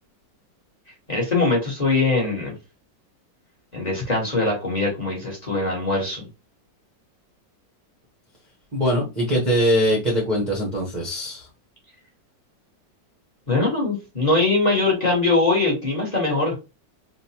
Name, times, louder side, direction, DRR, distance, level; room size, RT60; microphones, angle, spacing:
voice 1, 1.1-2.5 3.7-6.3 13.5-16.5, left 3 dB, 25° left, -2 dB, 1.2 m, -22 dB
voice 2, 8.7-11.5, equal, 35° right, -2 dB, 0.8 m, -22 dB
3.9 x 2.5 x 2.8 m, 0.27 s
omnidirectional pair, 1.9 m